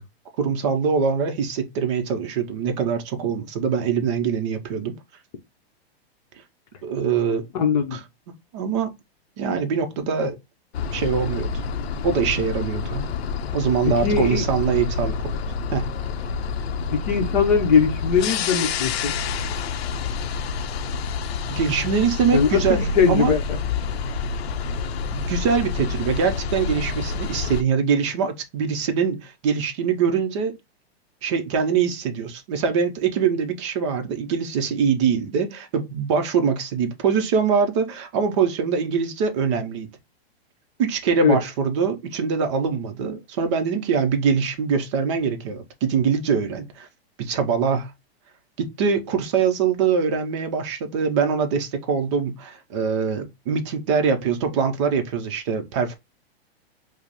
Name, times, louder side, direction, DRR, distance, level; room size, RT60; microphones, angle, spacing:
voice 1, 0.4-5.0 6.8-7.4 7.9-8.0 8.5-8.9 9.4-10.4 10.9-11.5 12.0-13.1 13.5-15.2 15.7-15.9 21.5-23.3 25.1-30.6 31.2-39.9 40.8-46.9 47.2-47.9 48.6-56.0, right 6 dB, 30° right, 0.5 m, -23 dB
voice 2, 7.5-8.0 13.8-14.4 16.9-19.1 22.3-23.4 41.2-41.4, left 6 dB, 40° left, 0.7 m, -20 dB
sound 1, 10.7-27.6, left 5 dB, 75° left, 0.5 m, -28 dB
5.0 x 2.0 x 2.9 m
supercardioid pair, 165°, 32 cm